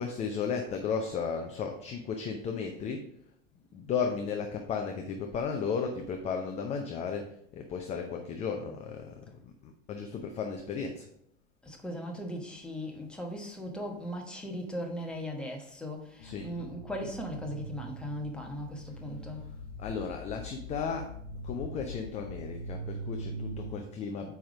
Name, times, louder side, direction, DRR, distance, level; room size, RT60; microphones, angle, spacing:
voice 1, 0.0-3.0 3.7-9.3 9.6-11.1 16.2-16.5 19.8-21.1 21.4-24.3, left 6 dB, 20° left, 0.6 m, -34 dB
voice 2, 11.6-19.5, equal, ahead, 1.2 m, -38 dB
sound 1, 16.2-23.8, right 1 dB, 40° left, 1.1 m, -42 dB
8.6 x 3.5 x 4.9 m
figure-of-eight pair, 90°, 38 cm